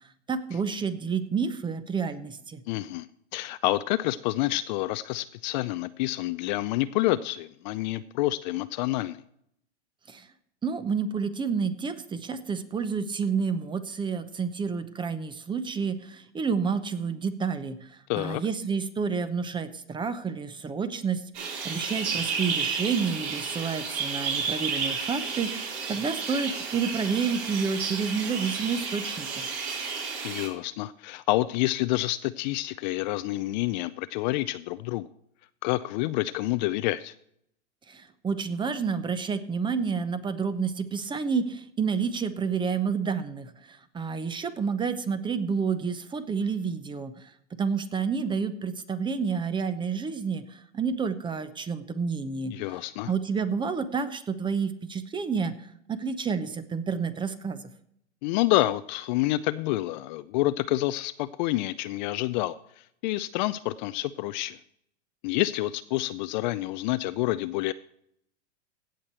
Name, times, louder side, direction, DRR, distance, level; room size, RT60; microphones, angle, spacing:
voice 1, 0.3-2.6 10.1-10.2 10.6-17.8 18.1-29.5 37.9-47.1 47.6-52.5 53.1-55.5 55.9-57.6, right 5 dB, 15° right, 13 dB, 0.7 m, -29 dB
voice 2, 2.7-3.1 3.3-9.2 18.1-18.4 30.2-35.1 35.6-37.1 52.5-53.1 58.2-62.5 63.0-64.6 65.2-67.7, left 17 dB, 40° left, 14 dB, 0.4 m, -28 dB
sound 1, 21.3-30.5, right 5 dB, 50° right, 4.0 m, -32 dB
16.5 x 6.6 x 4.4 m, 0.71 s
hypercardioid pair, 115°, 35 cm